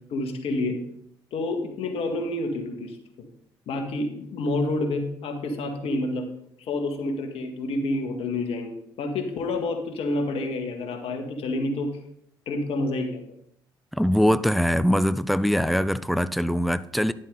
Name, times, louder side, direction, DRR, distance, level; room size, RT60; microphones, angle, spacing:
voice 1, 0.1-0.8 1.3-3.3 3.7-6.3 6.7-11.9 12.5-13.2, left 2 dB, 65° left, 1.8 m, -28 dB
voice 2, 13.9-17.1, equal, ahead, 0.5 m, -22 dB
10.5 x 7.4 x 3.9 m
hypercardioid pair, 60°, 11 cm